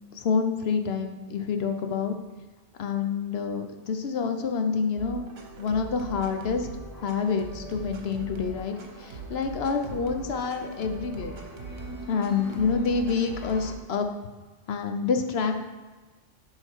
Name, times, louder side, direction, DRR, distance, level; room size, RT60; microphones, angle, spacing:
voice 1, 0.1-2.2 2.8-5.2 5.6-6.7 6.9-11.4 12.1-14.1 14.7-15.6, left 5 dB, 60° left, 6 dB, 0.9 m, -27 dB
sound 1, 5.0-13.7, right 4 dB, 75° right, 1.3 m, -41 dB
sound 2, 7.0-13.8, equal, 75° left, 1.4 m, -45 dB
11.0 x 3.9 x 4.5 m, 1.3 s
omnidirectional pair, 1.3 m